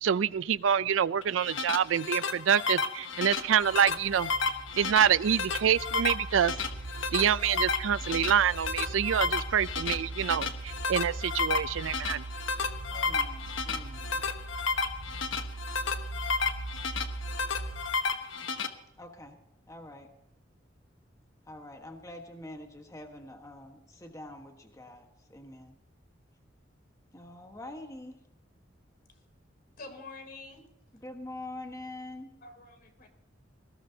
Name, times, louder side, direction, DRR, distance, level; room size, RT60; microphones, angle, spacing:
voice 1, 0.0-4.3 4.8-6.5 7.1-12.2, right 8 dB, 85° right, 18 dB, 0.4 m, -26 dB
sound 1, 1.2-18.7, left 4 dB, 80° left, 1.2 m, -32 dB
sound 2, 3.3-18.1, right 2 dB, 45° right, 0.9 m, -40 dB
voice 2, 12.9-14.2 19.0-19.4 19.7-20.1 21.4-25.8 27.1-28.2 30.9-32.4, left 1 dB, 15° left, 4 dB, 1.3 m, -45 dB
voice 3, 29.8-30.6 32.4-33.1, left 3 dB, 50° left, 5 dB, 3.3 m, -46 dB
19.5 x 17.5 x 2.8 m, 0.90 s
head